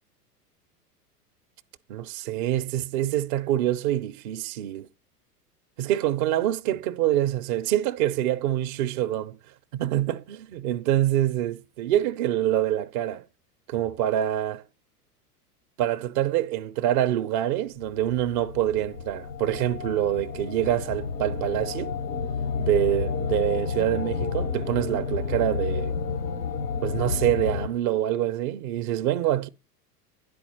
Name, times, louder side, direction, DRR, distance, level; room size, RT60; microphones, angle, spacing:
voice 1, 1.9-4.9 5.8-9.4 9.7-13.2 13.7-14.6 15.8-22.0 22.6-26.0 26.8-29.5, right 12 dB, 35° right, 0.4 m, -26 dB
sound 1, 17.8-27.7, left 5 dB, 85° left, 1.0 m, -30 dB
10.0 x 4.2 x 4.2 m
figure-of-eight pair, 90°, 48 cm